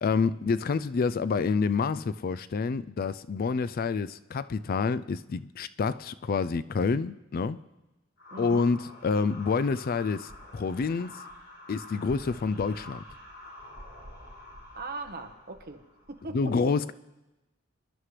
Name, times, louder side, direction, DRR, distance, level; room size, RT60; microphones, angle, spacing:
voice 1, 0.0-7.6 8.4-11.1 11.7-13.0 16.3-16.9, left 4 dB, 45° left, 0.4 m, -28 dB
sound 1, 8.2-16.2, left 1 dB, 60° left, 4.9 m, -47 dB
voice 2, 8.3-8.7 14.7-15.8 16.1-16.8, right 3 dB, 50° right, 1.3 m, -39 dB
26.5 x 11.0 x 3.3 m
head